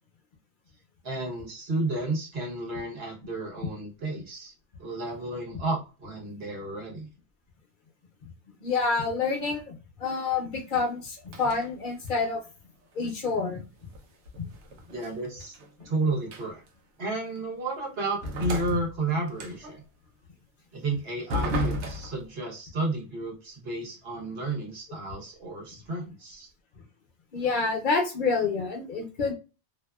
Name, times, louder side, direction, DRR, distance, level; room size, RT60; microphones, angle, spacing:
voice 1, 1.0-4.5 4.8-7.1 14.9-15.6 15.8-16.6 17.0-19.8 20.7-26.5, right 2 dB, 65° right, -1 dB, 1.2 m, -32 dB
voice 2, 8.6-12.4 13.0-13.7 14.4-14.5 18.7-18.8 27.3-29.3, left 4 dB, 50° left, 1 dB, 0.8 m, -28 dB
sound 1, 11.3-11.7 12.1-12.4 13.9-15.9 16.3-16.7 17.4-17.5 18.2-19.8 21.3-22.3, equal, 80° right, 0.9 m, -33 dB
2.7 x 2.1 x 2.3 m, 0.32 s
omnidirectional pair, 1.2 m